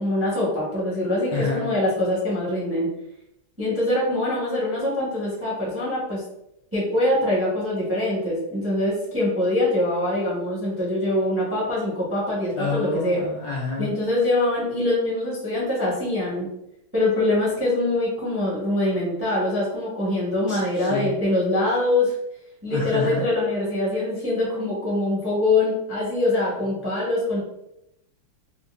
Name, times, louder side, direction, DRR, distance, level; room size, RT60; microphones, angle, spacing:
voice 1, 0.0-2.9 3.6-6.2 6.7-13.2 13.8-16.5 16.9-22.1 22.6-27.4, left 1 dB, 15° right, -6 dB, 0.5 m, -24 dB
voice 2, 1.3-1.7 12.6-13.9 20.5-21.1 22.7-23.3, left 3 dB, 75° left, -3 dB, 1.0 m, -28 dB
5.2 x 2.1 x 2.4 m, 0.83 s
omnidirectional pair, 2.4 m